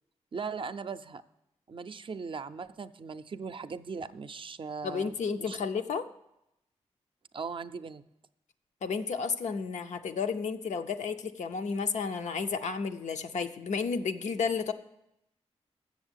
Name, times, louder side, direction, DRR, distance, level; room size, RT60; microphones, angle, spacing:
voice 1, 0.3-1.2 1.7-5.6 7.3-8.0, right 5 dB, 45° right, 12 dB, 0.4 m, -39 dB
voice 2, 4.8-6.1 8.8-14.7, left 5 dB, 85° left, 7 dB, 0.6 m, -32 dB
7.3 x 7.1 x 7.9 m, 0.84 s
cardioid pair, 80°, 12 cm